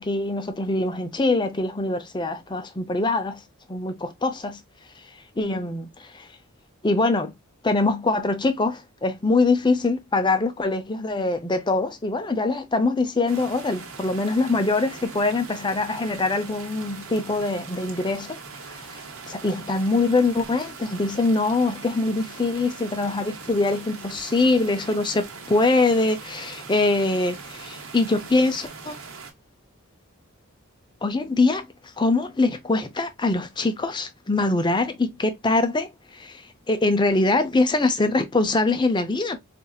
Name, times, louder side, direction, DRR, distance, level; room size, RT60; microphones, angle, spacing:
voice 1, 0.0-3.4 3.7-4.6 5.4-6.3 6.8-7.3 7.6-18.4 18.9-19.0 19.3-29.0 31.0-31.7 32.0-36.4 36.7-39.4, left 3 dB, 20° left, 0.5 m, -23 dB
sound 1, 13.3-29.3, right 4 dB, 65° right, 0.9 m, -41 dB
4.2 x 2.5 x 2.3 m
head